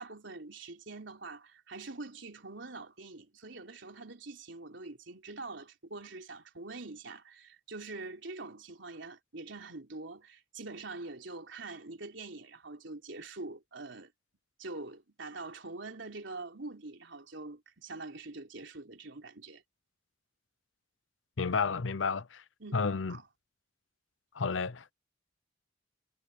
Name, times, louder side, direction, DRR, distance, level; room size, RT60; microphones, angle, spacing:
voice 1, 0.0-14.1 14.6-19.6 22.6-23.2, right 3 dB, 75° right, 3.5 m, -44 dB
voice 2, 21.4-22.4 22.7-23.2 24.3-24.9, left 5 dB, 85° left, 0.8 m, -31 dB
head